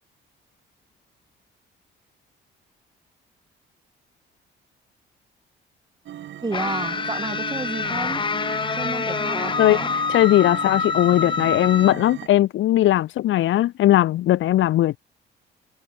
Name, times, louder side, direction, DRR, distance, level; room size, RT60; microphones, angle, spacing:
sound 1, 6.1-12.3, right 12 dB, 70° right, 1.7 m, -37 dB
voice 1, 6.4-8.2 8.7-10.0, right 3 dB, 20° right, 7.8 m, -31 dB
sound 2, 6.5-11.9, left 5 dB, 25° left, 0.6 m, -26 dB
voice 2, 10.1-15.0, left 14 dB, 80° left, 1.6 m, -18 dB
cardioid pair, 90°, 20 cm